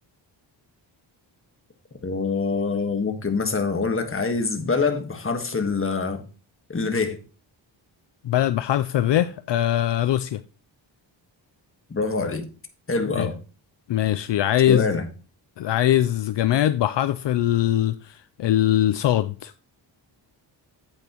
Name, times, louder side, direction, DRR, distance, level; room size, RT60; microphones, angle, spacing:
voice 1, 2.0-6.2 6.7-7.2 11.9-12.4 12.9-13.4 14.7-15.1, left 4 dB, 25° left, 1.4 m, -25 dB
voice 2, 8.2-10.4 13.2-13.3 13.9-14.8 15.6-19.5, left 12 dB, 65° left, 0.5 m, -22 dB
8.7 x 8.1 x 3.0 m
wide cardioid pair, 120°, 46 cm